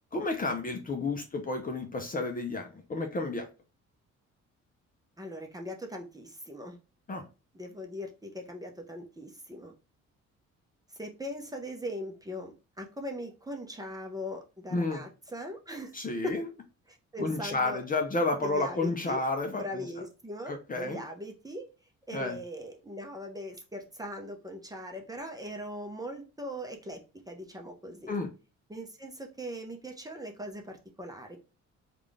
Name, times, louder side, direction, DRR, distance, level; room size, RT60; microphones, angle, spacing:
voice 1, 0.1-3.5 7.1-7.2 14.7-15.0 15.9-16.5 17.2-19.9 20.5-21.0 22.1-22.4 28.1-28.3, left 2 dB, 30° left, 4 dB, 0.6 m, -31 dB
voice 2, 5.2-6.8 7.5-9.7 10.9-15.9 16.2-16.4 16.9-17.8 18.4-19.2 19.5-21.7 22.1-28.2 28.7-31.4, equal, 10° right, 2 dB, 0.8 m, -40 dB
3.6 x 2.5 x 3.3 m, 0.31 s
cardioid pair, 90°, 30 cm